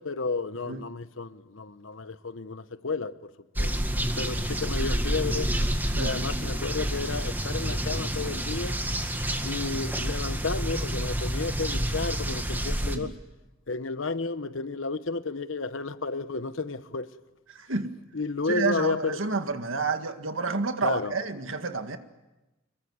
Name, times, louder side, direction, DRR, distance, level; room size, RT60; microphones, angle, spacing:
voice 1, 0.0-3.3 3.6-3.7 4.2-5.5 6.0-8.8 9.4-13.1 13.7-17.1 18.1-19.2 20.8-21.1, left 3 dB, 70° left, 1.1 m, -32 dB
sound 1, 3.6-13.0, right 1 dB, 10° right, 2.0 m, -29 dB
voice 2, 5.9-6.5 12.8-13.1 17.5-17.9 18.5-22.0, right 3 dB, 75° right, 1.9 m, -30 dB
25.5 x 22.5 x 9.6 m
head